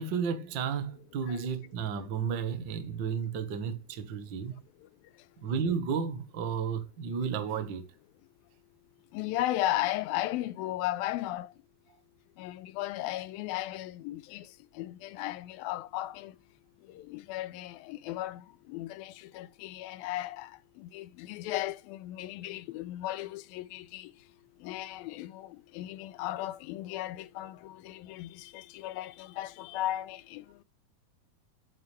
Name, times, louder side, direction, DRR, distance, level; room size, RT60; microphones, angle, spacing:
voice 1, 0.0-4.6 5.4-7.8, right 6 dB, 70° right, 1.0 m, -33 dB
voice 2, 9.1-11.5 12.4-16.4 16.9-24.1 24.6-30.6, left 15 dB, 80° left, 2.4 m, -36 dB
10.5 x 9.9 x 3.2 m
omnidirectional pair, 4.3 m